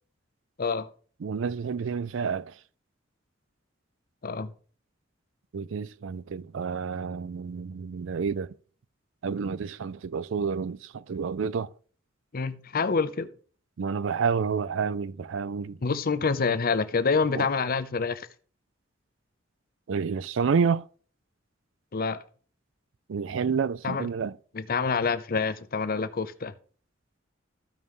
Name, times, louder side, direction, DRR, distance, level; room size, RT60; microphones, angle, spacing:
voice 1, 1.2-2.5 5.5-8.5 9.2-11.7 13.8-15.8 17.3-17.5 19.9-20.8 23.1-24.3, right 6 dB, 75° right, 0.4 m, -29 dB
voice 2, 12.3-13.3 15.8-18.3 21.9-22.2 23.8-24.1 24.5-26.5, left 4 dB, 50° left, 0.7 m, -27 dB
14.5 x 5.3 x 3.1 m
head